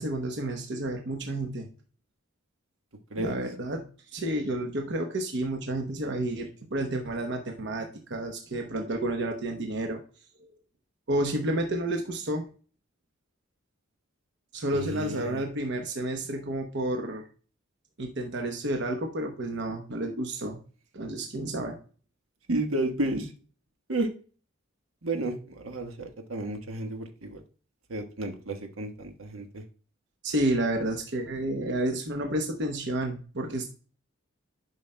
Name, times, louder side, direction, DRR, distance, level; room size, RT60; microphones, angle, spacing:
voice 1, 0.0-1.7 3.2-3.8 4.1-10.0 11.1-12.4 14.5-17.3 18.0-20.6 20.9-21.8 30.2-33.7, right 1 dB, 60° right, 4 dB, 0.9 m, -30 dB
voice 2, 14.7-15.4 22.5-23.3 23.9-24.1 25.0-27.4 27.9-29.6, right 2 dB, 85° right, 5 dB, 1.3 m, -32 dB
11.0 x 5.6 x 2.2 m, 0.39 s
head